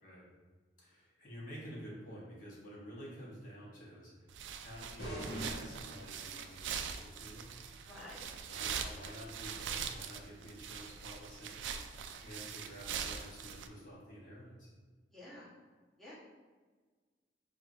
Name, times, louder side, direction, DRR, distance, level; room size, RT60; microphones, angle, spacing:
voice 1, 0.8-7.5 8.5-11.6 12.2-14.7, equal, 45° left, -6 dB, 1.1 m, -50 dB
sound 1, 4.3-13.7, right 7 dB, 85° right, 0.3 m, -42 dB
sound 2, 5.0-6.5, equal, 60° left, 1.2 m, -43 dB
voice 2, 7.9-8.2 15.1-15.5 16.0-16.1, left 1 dB, ahead, -10 dB, 1.1 m, -50 dB
6.4 x 2.5 x 2.5 m, 1.4 s
head